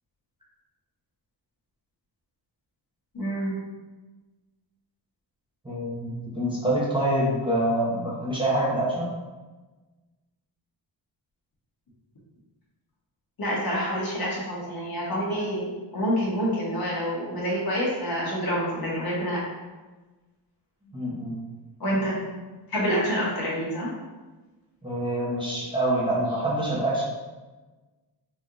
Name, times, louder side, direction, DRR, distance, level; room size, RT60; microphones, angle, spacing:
voice 1, 3.1-3.5 13.4-19.4 21.8-22.2 22.7-23.9, equal, 50° left, -5 dB, 1.3 m, -27 dB
voice 2, 5.6-9.1 20.9-21.4 24.8-27.0, right 1 dB, 10° right, -7 dB, 0.9 m, -26 dB
5.3 x 2.8 x 2.5 m, 1.2 s
wide cardioid pair, 135°, 45 cm